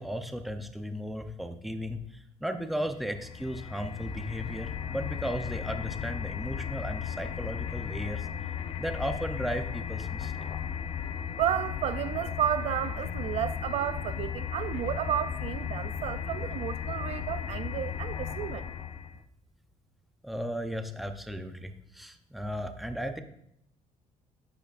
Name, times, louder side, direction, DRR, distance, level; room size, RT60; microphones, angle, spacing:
voice 1, 0.0-8.3 8.8-10.5 20.2-23.2, equal, ahead, 0.7 m, -35 dB
sound 1, 3.0-19.2, left 8 dB, 40° left, 0.5 m, -35 dB
voice 2, 11.4-18.6, right 10 dB, 55° right, 0.4 m, -32 dB
10.0 x 9.2 x 2.5 m
cardioid pair, 130°, 13 cm